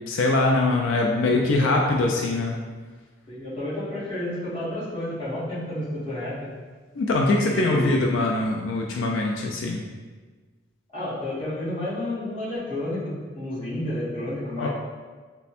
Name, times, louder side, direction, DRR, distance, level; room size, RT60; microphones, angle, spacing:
voice 1, 0.1-2.5 7.0-9.8 14.6-14.7, left 2 dB, 90° left, 1 dB, 0.4 m, -23 dB
voice 2, 3.3-6.4 7.4-8.1 10.9-14.7, left 1 dB, 30° left, -12 dB, 1.4 m, -30 dB
3.3 x 2.2 x 4.1 m, 1.4 s
head